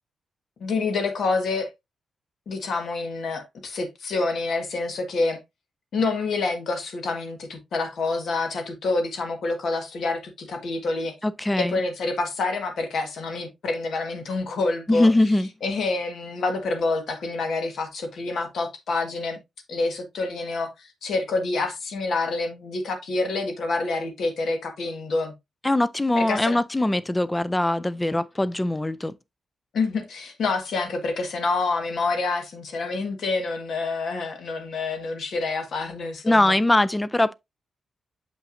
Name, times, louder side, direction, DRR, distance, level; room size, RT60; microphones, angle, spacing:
voice 1, 0.6-1.7 2.5-5.4 5.9-11.1 11.6-15.1 15.6-19.4 19.7-25.3 26.1-26.6 29.7-36.6, left 3 dB, 65° left, 1.5 m, -27 dB
voice 2, 11.2-11.8 14.9-15.5 25.6-29.1 36.2-37.3, left 1 dB, 10° left, 0.3 m, -22 dB
7.1 x 5.6 x 2.6 m
wide cardioid pair, 165°, 0 cm